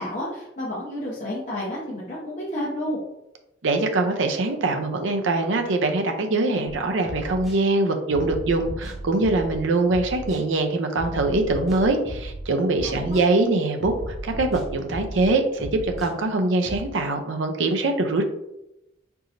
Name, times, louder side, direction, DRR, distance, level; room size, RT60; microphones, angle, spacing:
voice 1, 0.0-3.0 13.0-13.2, left 1 dB, 40° left, -7 dB, 1.0 m, -30 dB
voice 2, 3.6-18.2, right 2 dB, 75° right, 5 dB, 0.6 m, -23 dB
sound 1, 7.0-7.6 8.1-9.6 9.9-10.4 11.0-12.4 12.7-13.2 13.8-15.3 15.6-16.1 16.6-16.8, equal, ahead, 1.4 m, -35 dB
4.7 x 3.9 x 2.6 m, 0.87 s
head